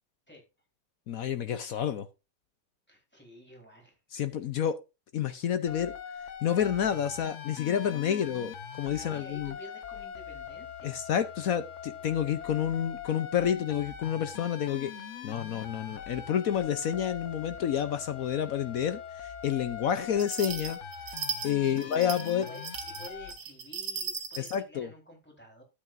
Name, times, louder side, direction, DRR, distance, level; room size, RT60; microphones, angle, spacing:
voice 1, 1.1-2.1 4.1-4.8 5.1-5.9 6.4-9.5 10.8-14.9 15.2-20.8 21.4-22.5 24.4-24.9, left 9 dB, 70° left, 0.8 m, -29 dB
voice 2, 2.9-4.0 7.7-8.3 8.9-11.0 21.6-25.6, equal, 5° left, 3.8 m, -51 dB
sound 1, 5.7-23.3, left 7 dB, 50° left, 1.0 m, -42 dB
sound 2, 20.2-24.6, right 6 dB, 80° right, 2.3 m, -37 dB
12.0 x 8.4 x 2.6 m
omnidirectional pair, 2.3 m